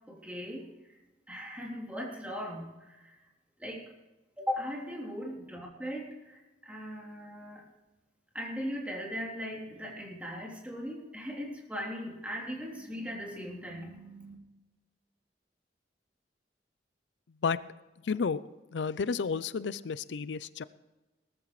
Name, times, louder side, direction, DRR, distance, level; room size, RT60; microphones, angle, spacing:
voice 1, 0.1-1.0 1.3-3.2 3.6-3.9 4.4-7.6 8.3-14.3, equal, 10° right, -2 dB, 3.3 m, -39 dB
voice 2, 18.0-18.4 18.7-20.6, left 5 dB, 85° left, 16 dB, 0.5 m, -31 dB
19.0 x 14.0 x 3.2 m, 1.1 s
head